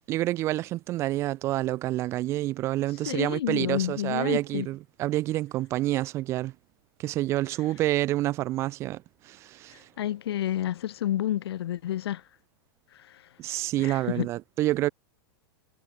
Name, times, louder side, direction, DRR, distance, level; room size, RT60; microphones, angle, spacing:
voice 1, 0.1-6.5 7.0-9.9 13.4-14.9, right 16 dB, 20° right, 0.3 m, -28 dB
voice 2, 3.1-4.7 10.0-12.2 12.9-13.2 13.8-14.3, left 12 dB, 80° left, 0.7 m, -30 dB
supercardioid pair, 160°, 13 cm